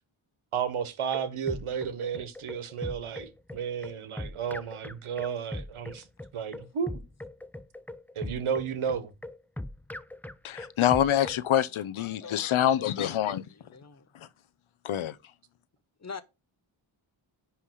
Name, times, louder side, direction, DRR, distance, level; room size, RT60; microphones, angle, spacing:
voice 1, 0.5-6.0 6.3-7.0 8.1-9.1, right 7 dB, 80° right, 1.3 m, -32 dB
sound 1, 0.8-11.4, left 1 dB, 5° left, 0.5 m, -40 dB
voice 2, 10.4-13.4 14.1-14.3 14.8-15.2, left 11 dB, 80° left, 0.8 m, -26 dB
voice 3, 11.7-12.5 12.8-14.1 16.0-16.2, left 4 dB, 35° left, 1.0 m, -45 dB
10.0 x 3.4 x 6.3 m
cardioid pair, 65°, 49 cm